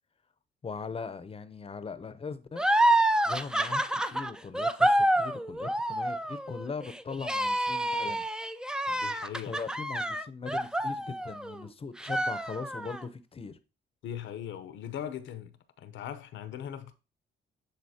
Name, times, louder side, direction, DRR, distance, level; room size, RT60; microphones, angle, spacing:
voice 1, 0.6-2.6 3.2-8.3 9.5-13.6, left 5 dB, 30° left, 0.7 m, -40 dB
sound 1, 2.6-11.6 12.0-13.0, right 1 dB, 5° right, 0.3 m, -28 dB
voice 2, 8.9-9.6 14.0-16.9, left 10 dB, 75° left, 0.8 m, -40 dB
9.8 x 4.0 x 2.8 m
cardioid pair, 90°, 20 cm